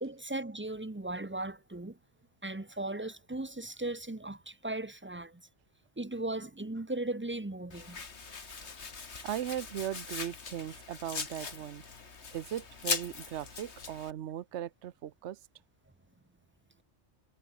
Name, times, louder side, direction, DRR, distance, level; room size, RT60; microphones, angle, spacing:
voice 1, 0.0-2.0 2.4-5.4 6.0-8.0, right 2 dB, 10° right, 0.7 m, -37 dB
Domestic sounds home sounds, 7.7-14.1, left 5 dB, 65° left, 2.2 m, -40 dB
voice 2, 9.2-11.8 12.3-15.4, right 11 dB, 70° right, 1.0 m, -38 dB
omnidirectional pair, 1.2 m